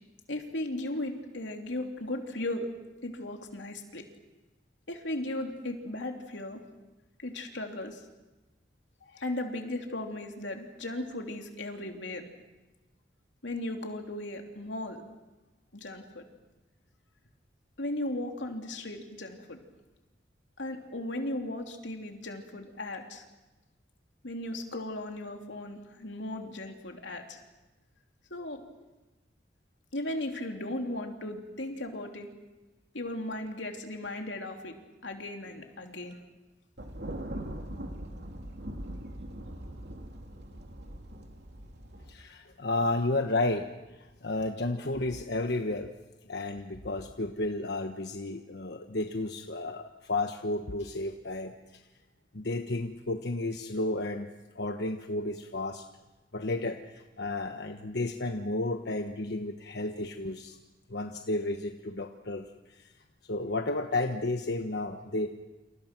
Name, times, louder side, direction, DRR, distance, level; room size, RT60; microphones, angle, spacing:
voice 1, 0.3-2.7 3.0-4.1 4.9-6.6 7.2-8.0 9.0-12.2 13.4-15.0 15.7-16.2 17.8-19.6 20.6-23.2 24.2-27.4 28.3-28.6 29.9-32.3 32.9-34.8 35.0-36.2, left 1 dB, 90° left, 3 dB, 3.1 m, -36 dB
Thunder, 36.8-42.1, right 1 dB, 65° right, 3.2 m, -41 dB
voice 2, 42.1-43.7 44.2-45.9 46.3-51.8 52.3-54.3 54.5-55.8 56.3-60.6 60.9-62.8 63.3-65.3, left 2 dB, 65° left, 5 dB, 1.3 m, -32 dB
29.0 x 27.5 x 6.1 m, 1.1 s
head